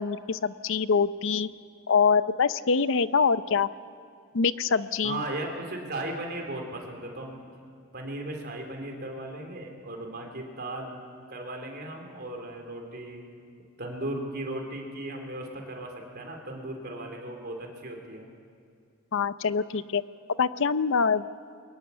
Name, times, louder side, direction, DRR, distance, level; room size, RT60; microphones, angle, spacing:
voice 1, 0.0-1.5 1.9-3.7 4.3-5.2 19.1-20.0 20.4-21.2, left 5 dB, 65° left, 14 dB, 0.6 m, -24 dB
voice 2, 5.0-7.5 7.9-11.0 11.3-13.2 13.8-18.3, right 1 dB, 50° right, 2 dB, 3.5 m, -36 dB
22.0 x 15.5 x 9.7 m, 2.4 s
head